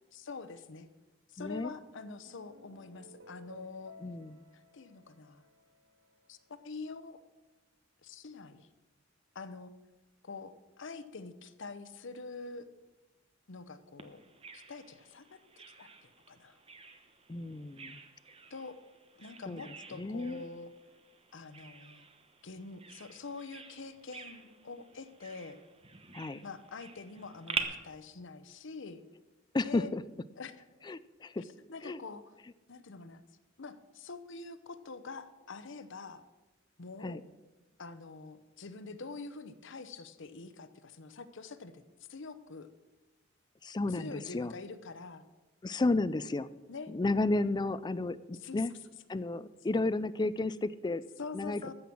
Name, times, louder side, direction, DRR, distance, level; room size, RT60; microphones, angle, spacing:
voice 1, 0.1-0.9 1.3-4.0 4.5-5.4 6.3-7.2 8.0-8.7 9.3-9.7 10.2-12.7 13.5-14.2 14.5-15.4 15.8-16.6 18.5-18.8 19.2-20.7 21.3-22.1 22.4-25.6 26.4-29.0 29.6-29.9 30.4-30.5 31.4-32.2 32.7-33.2 33.6-36.2 36.8-37.2 37.8-41.8 42.1-42.7 43.9-45.2 46.7-46.9 48.3-48.6 51.2-51.7, left 4 dB, 65° left, 12 dB, 0.8 m, -45 dB
voice 2, 1.4-1.7 4.0-4.4 17.3-18.0 19.5-19.6 20.0-20.4 26.1-26.4 29.5-30.0 30.9-31.4 31.8-32.0 37.0-37.2 43.6-44.5 45.6-46.5 46.9-48.7 49.1-51.0 51.3-51.7, left 2 dB, 20° left, 15 dB, 0.4 m, -32 dB
sound 1, 1.8-6.3, left 1 dB, 80° right, 1.6 m, -55 dB
Bird vocalization bird call bird song, 14.0-27.6, right 5 dB, 30° right, 1.1 m, -46 dB
14.0 x 6.1 x 8.5 m, 1.1 s
head